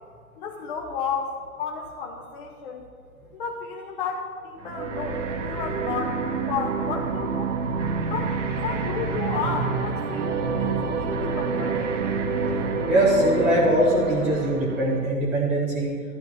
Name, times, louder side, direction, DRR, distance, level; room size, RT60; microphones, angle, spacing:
voice 1, 0.4-2.8 3.3-6.2 6.5-7.6 8.1-12.0, left 5 dB, 35° left, -2 dB, 1.0 m, -32 dB
sound 1, 4.6-15.1, right 4 dB, 50° right, 1.3 m, -28 dB
voice 2, 12.9-15.9, right 1 dB, 5° right, -7 dB, 0.6 m, -21 dB
12.5 x 5.7 x 8.9 m, 2.2 s
figure-of-eight pair, 125°, 46 cm